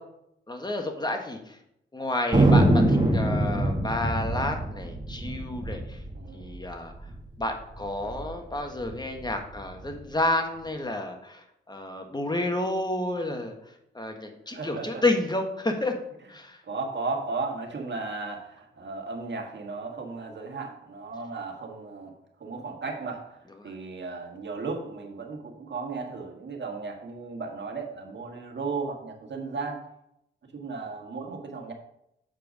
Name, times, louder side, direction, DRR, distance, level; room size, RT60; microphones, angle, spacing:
voice 1, 0.5-1.6 1.9-6.0 6.3-6.9 7.4-13.5 13.9-15.9 16.3-16.6 23.6-23.7, left 2 dB, 20° left, 4 dB, 1.5 m, -30 dB
Thunder, 2.3-7.2 7.4-7.5 7.7-8.3 8.8-9.9, right 1 dB, 20° right, 1.9 m, -24 dB
voice 2, 6.1-6.6 14.5-15.0 16.6-22.1 22.4-23.4 23.6-29.8 30.5-31.7, right 4 dB, 60° right, 2 dB, 1.6 m, -35 dB
7.7 x 4.6 x 5.2 m, 0.79 s
cardioid pair, 60°, 21 cm